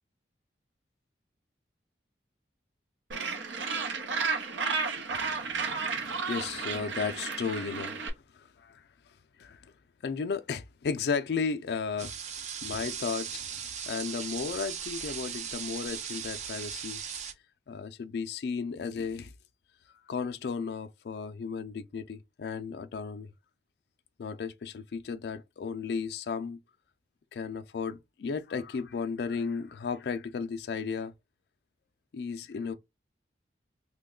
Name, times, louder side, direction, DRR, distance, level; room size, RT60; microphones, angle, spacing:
Gull seagull, 3.1-8.1, right 4 dB, 90° right, 0.7 m, -32 dB
voice 1, 5.1-5.6 6.3-8.0 8.3-8.8 9.4-9.7 10.0-12.1 12.6-17.0 17.7-19.3 20.1-23.3 24.2-26.6 27.3-31.1 32.1-32.7, left 5 dB, 65° left, 0.3 m, -34 dB
sound 1, 12.0-17.3, right 8 dB, 40° right, 0.4 m, -38 dB
3.0 x 2.2 x 3.6 m
head